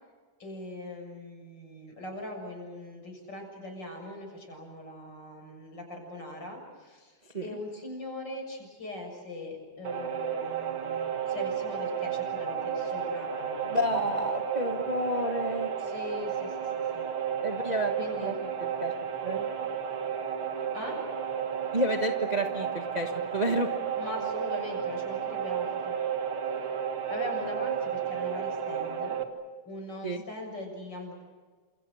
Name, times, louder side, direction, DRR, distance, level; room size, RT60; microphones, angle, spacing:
voice 1, 0.4-14.1 15.8-17.1 18.0-18.3 20.7-21.0 24.0-26.0 27.1-29.2 29.6-31.2, left 1 dB, 50° left, 2 dB, 7.7 m, -41 dB
sound 1, 9.8-29.2, right 8 dB, 75° right, 2.7 m, -32 dB
voice 2, 13.7-15.7 17.4-17.9 18.2-18.3 18.6-18.9 19.2-19.4 21.7-23.7 30.0-30.2, right 1 dB, 25° right, 4 dB, 1.2 m, -30 dB
29.0 x 28.0 x 6.4 m, 1.4 s
omnidirectional pair, 2.4 m